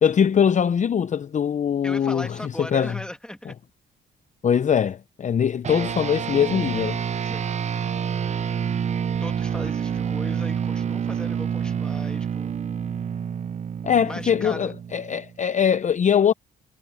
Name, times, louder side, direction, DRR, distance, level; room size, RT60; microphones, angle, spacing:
voice 1, 0.0-3.0 3.5-3.6 4.4-7.0 13.8-16.3, left 8 dB, 40° left, 0.6 m, -22 dB
voice 2, 1.8-3.6 7.2-7.5 9.2-12.6 14.1-14.7, left 1 dB, 5° left, 2.3 m, -37 dB
sound 1, 5.6-15.4, right 7 dB, 35° right, 0.5 m, -28 dB
cardioid pair, 90°, 20 cm